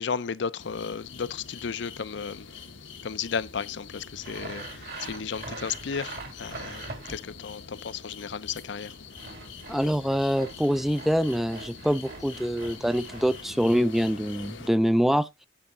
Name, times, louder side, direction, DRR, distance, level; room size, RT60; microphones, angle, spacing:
voice 1, 0.0-2.5 3.0-8.9, left 6 dB, 65° left, 0.5 m, -34 dB
sound 1, 0.6-14.7, left 5 dB, 85° left, 1.2 m, -45 dB
Sawing, 4.2-7.4 8.9-13.4, right 3 dB, 55° right, 2.2 m, -43 dB
voice 2, 9.7-15.3, equal, ahead, 0.4 m, -25 dB
10.0 x 5.7 x 3.7 m
head